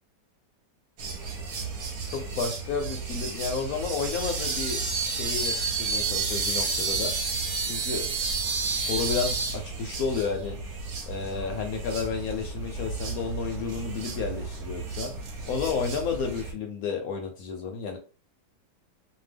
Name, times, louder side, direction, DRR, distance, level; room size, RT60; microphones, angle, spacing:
sound 1, 1.0-16.5, right 4 dB, 65° right, 1.1 m, -31 dB
voice 1, 2.1-4.8 5.1-7.1 7.6-8.1 8.6-10.6 11.1-15.1 15.5-18.0, left 5 dB, 70° left, 3 dB, 0.9 m, -31 dB
2.8 x 2.3 x 3.3 m, 0.35 s
omnidirectional pair, 1.9 m